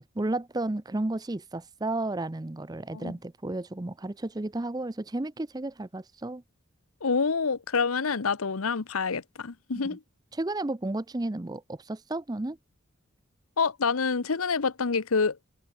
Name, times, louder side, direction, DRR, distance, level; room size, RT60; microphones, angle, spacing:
voice 1, 0.1-6.4 9.7-10.0 10.3-12.6, right 2 dB, 20° right, 0.5 m, -32 dB
voice 2, 7.0-10.0 13.6-15.4, left 5 dB, 85° left, 0.9 m, -27 dB
head